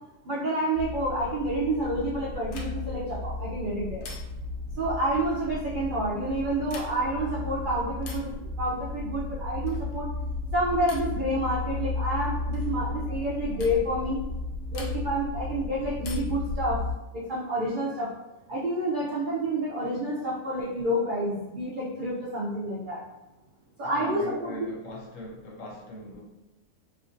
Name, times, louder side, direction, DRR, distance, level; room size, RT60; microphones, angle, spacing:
voice 1, 0.3-4.1 4.8-10.1 10.5-14.2 14.7-16.8 17.1-18.1 18.5-23.0 23.8-24.5, right 1 dB, 75° right, -5 dB, 0.4 m, -29 dB
sound 1, 0.7-16.9, left 2 dB, 20° right, 1.0 m, -34 dB
sound 2, 2.5-3.0 4.0-4.6 6.6-7.2 8.0-8.4 9.6-10.0 10.9-11.2 12.5-12.7 13.6-13.8 14.7-15.3 16.0-16.5 18.0-18.6, left 3 dB, 85° left, 1.1 m, -45 dB
voice 2, 23.8-26.2, left 1 dB, 65° left, -1 dB, 1.0 m, -41 dB
3.5 x 2.4 x 2.5 m, 0.98 s
omnidirectional pair, 1.6 m